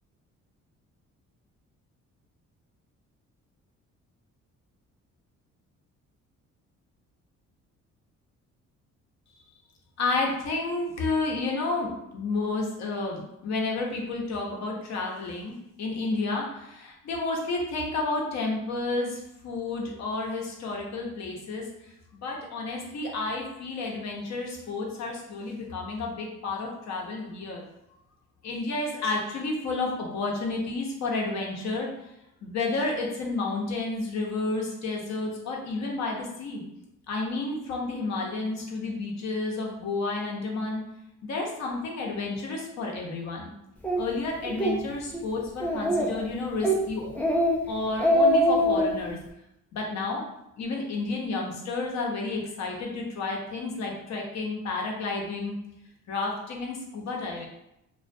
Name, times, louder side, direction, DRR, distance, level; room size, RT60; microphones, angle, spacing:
voice 1, 10.0-21.7 22.1-27.6 28.4-31.9 32.4-36.6 37.1-40.8 41.2-43.5 44.0-47.1 47.7-49.2 49.7-50.2 50.6-55.5 56.1-57.5, left 3 dB, 60° left, -1 dB, 0.7 m, -31 dB
Speech, 43.8-44.0 44.5-44.8 45.1-45.2 45.6-46.2 46.6-46.8 47.2-47.6 47.9-48.9, equal, 5° left, 0.4 m, -23 dB
2.2 x 2.2 x 2.5 m, 0.84 s
cardioid pair, 90°, 30 cm